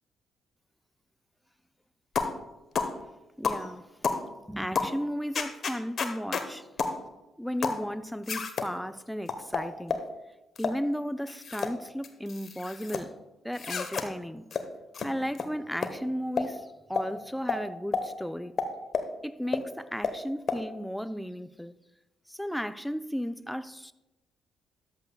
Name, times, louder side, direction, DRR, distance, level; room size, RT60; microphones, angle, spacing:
sound 1, 2.2-2.4 2.7-2.9 3.4-3.6 4.0-4.2 4.7-4.9 5.3-6.5 6.8-7.0 7.6-7.8 8.3-8.7 9.3-10.1 10.6-10.8 11.3-11.7 12.0-13.0 13.5-14.1 14.5-14.6 14.9-15.1 15.3-15.5 15.8-15.9 16.4-16.5 17.0-17.1 17.5-17.6 17.9-18.0 18.6-19.1 19.5-19.6 20.0-20.2 20.5-20.6, left 5 dB, 50° left, 1.0 m, -30 dB
voice 1, 3.4-3.9 4.5-6.7 7.4-10.0 10.6-13.1 13.4-14.5 15.0-18.5 19.2-21.7 22.3-23.9, equal, ahead, 0.6 m, -34 dB
13.5 x 10.5 x 2.3 m
hypercardioid pair, 40°, 0 cm